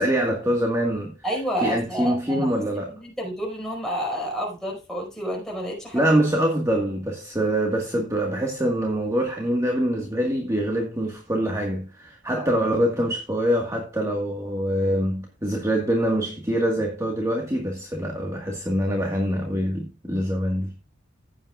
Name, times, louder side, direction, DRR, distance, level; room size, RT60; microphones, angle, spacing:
voice 1, 0.0-1.1 1.6-2.9 5.9-20.7, right 1 dB, 15° right, 1.6 m, -24 dB
voice 2, 1.2-2.5 2.9-6.0 12.3-12.5, equal, 5° left, 4.9 m, -29 dB
15.0 x 8.6 x 2.4 m
head